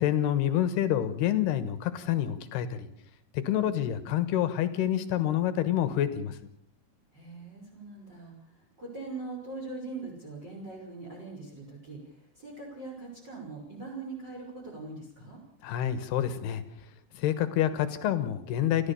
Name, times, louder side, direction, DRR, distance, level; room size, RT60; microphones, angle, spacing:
voice 1, 0.0-2.9 3.3-6.4 15.6-16.6 17.1-18.9, left 11 dB, 70° left, 11 dB, 2.9 m, -27 dB
voice 2, 7.1-15.4, right 3 dB, 20° right, 1 dB, 5.4 m, -42 dB
30.0 x 14.5 x 7.0 m, 0.66 s
omnidirectional pair, 5.5 m